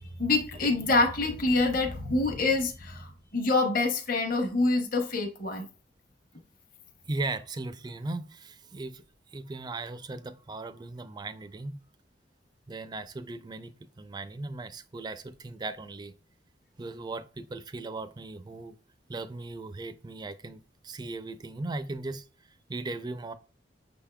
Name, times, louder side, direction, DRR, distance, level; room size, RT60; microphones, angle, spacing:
voice 1, 0.0-5.7, left 3 dB, 50° left, 0.9 m, -26 dB
voice 2, 7.1-9.0 9.3-11.8 12.7-16.1 16.8-18.8 19.1-22.3 22.7-23.3, right 2 dB, 25° right, 0.4 m, -37 dB
6.1 x 3.5 x 2.2 m
head